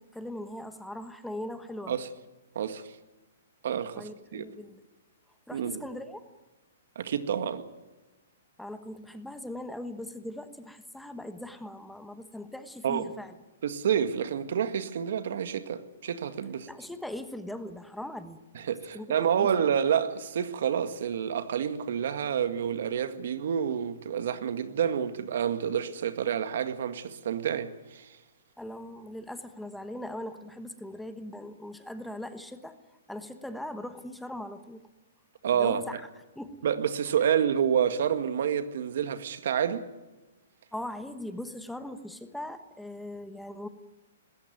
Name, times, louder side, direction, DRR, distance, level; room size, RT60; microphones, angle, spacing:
voice 1, 0.0-2.0 3.9-4.8 5.5-6.2 8.6-13.3 16.7-18.4 18.9-19.5 28.6-32.8 33.1-34.8 35.5-36.0 36.3-36.6 40.7-43.7, left 1 dB, ahead, 1.1 m, -40 dB
voice 2, 2.6-2.9 3.6-4.4 5.5-5.8 7.0-7.6 12.8-13.1 13.6-16.7 18.6-28.1 35.4-35.8 36.6-39.8, right 8 dB, 65° right, 1.8 m, -28 dB
20.5 x 16.5 x 9.3 m
hypercardioid pair, 160°, 0 cm